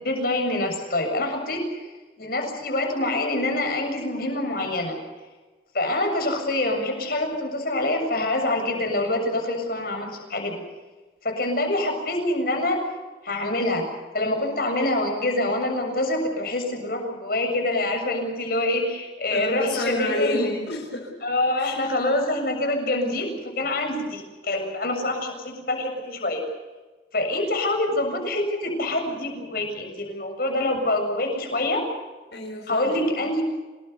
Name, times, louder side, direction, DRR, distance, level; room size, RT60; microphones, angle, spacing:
voice 1, 0.0-1.9 2.2-5.0 5.7-10.6 11.2-12.8 13.2-13.8 14.1-20.5 21.2-26.4 27.1-31.8 32.7-33.4, left 1 dB, 55° left, 3 dB, 7.1 m, -25 dB
voice 2, 19.3-21.2 21.6-21.9 32.3-33.3, left 1 dB, 75° left, 0 dB, 4.6 m, -30 dB
27.0 x 20.5 x 6.8 m, 1.3 s
head